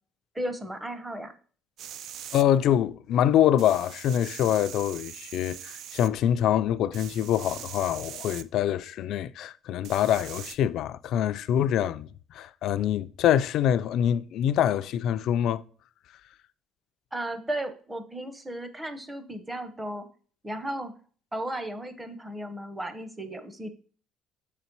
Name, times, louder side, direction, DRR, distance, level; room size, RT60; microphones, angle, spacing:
voice 1, 0.3-1.3 17.1-20.1 20.4-20.9 21.3-23.7, right 1 dB, 10° right, 0.8 m, -35 dB
sound 1, 1.8-2.4 3.6-6.1 6.9-8.4 9.8-10.6, right 9 dB, 60° right, 0.4 m, -42 dB
voice 2, 2.3-15.6, left 10 dB, 60° left, 0.4 m, -25 dB
7.4 x 4.1 x 4.5 m
cardioid pair, 145°, 0 cm